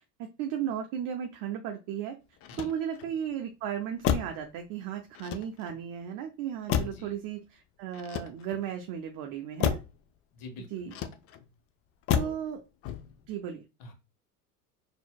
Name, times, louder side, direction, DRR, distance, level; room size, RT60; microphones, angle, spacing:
voice 1, 0.2-2.2 2.6-9.8 10.7-10.9 12.1-12.6 13.3-13.6, right 9 dB, 50° right, 4 dB, 0.6 m, -35 dB
Motor vehicle (road), 2.4-3.2 4.0-4.5 5.1-5.8 6.7-7.2 7.9-8.7 9.6-10.0 10.9-11.5 12.1-12.5 12.8-13.3, left 9 dB, 35° left, 0.5 m, -31 dB
voice 2, 6.7-7.1 10.3-11.0 12.1-12.3 13.8-13.9, left 3 dB, 50° left, 6 dB, 1.1 m, -46 dB
4.3 x 2.7 x 2.3 m, 0.28 s
hypercardioid pair, 95°, 43 cm